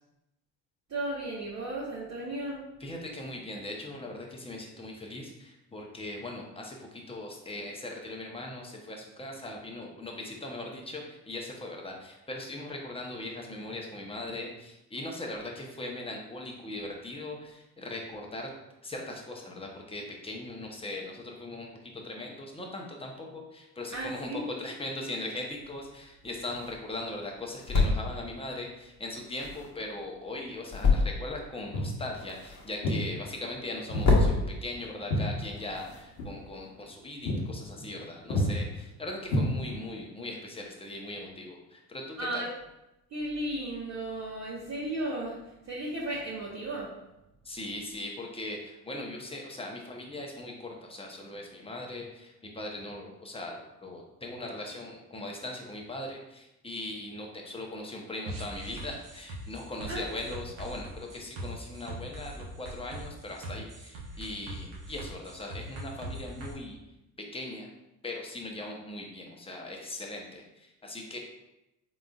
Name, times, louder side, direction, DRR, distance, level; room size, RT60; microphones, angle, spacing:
voice 1, 0.9-2.6 23.9-24.4 42.2-42.5 43.1-45.4 45.6-47.0 59.9-60.1, right 1 dB, 35° right, -6 dB, 0.9 m, -34 dB
voice 2, 2.8-18.5 18.8-21.7 22.0-42.5 47.4-66.8 67.3-67.7 68.0-71.2, left 2 dB, 10° left, 0 dB, 0.8 m, -39 dB
sound 1, 25.5-36.7, left 3 dB, 35° left, 1.0 m, -31 dB
Walk footsteps, 31.7-32.0 32.8-33.0 33.9-34.1 34.5-35.9 36.2-36.4 36.8-36.9 37.3-37.5 37.8-38.0 38.3-38.5 39.3-40.0, equal, 85° left, 1.0 m, -30 dB
sound 2, 58.3-66.5, right 1 dB, 75° right, 1.1 m, -41 dB
3.9 x 3.6 x 2.4 m, 0.92 s
hypercardioid pair, 65°, 48 cm